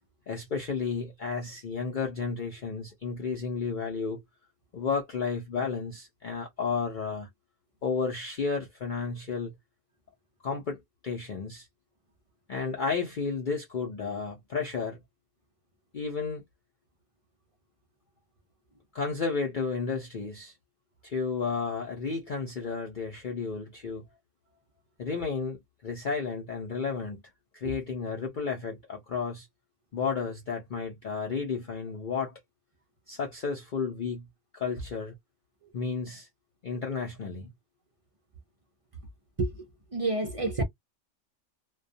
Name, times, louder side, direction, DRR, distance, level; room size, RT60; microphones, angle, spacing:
voice 1, 0.3-4.2 4.7-7.3 7.8-9.5 10.4-10.8 11.0-11.7 12.5-15.0 15.9-16.4 18.9-20.5 21.0-24.0 25.0-27.2 27.5-29.5 29.9-32.3 33.1-34.2 34.5-35.1 35.7-36.3 36.6-37.5, left 5 dB, 50° left, 0.7 m, -32 dB
voice 2, 39.4-40.6, right 2 dB, 45° right, 0.4 m, -30 dB
2.3 x 2.2 x 2.6 m
omnidirectional pair, 1.3 m